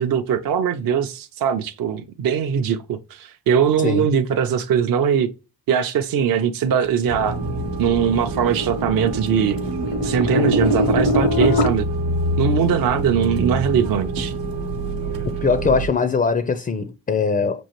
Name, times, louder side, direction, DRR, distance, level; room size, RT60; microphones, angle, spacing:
voice 1, 0.0-5.3 5.7-7.4 7.8-9.6 10.0-11.9 12.4-14.3, right 7 dB, 55° right, 0.6 m, -21 dB
sound 1, 6.9-11.7, left 1 dB, 80° left, 0.8 m, -23 dB
sound 2, 7.1-15.9, right 2 dB, 85° right, 0.9 m, -27 dB
voice 2, 15.4-17.6, left 5 dB, 20° left, 0.4 m, -21 dB
6.2 x 2.5 x 2.9 m
cardioid pair, 75°, 42 cm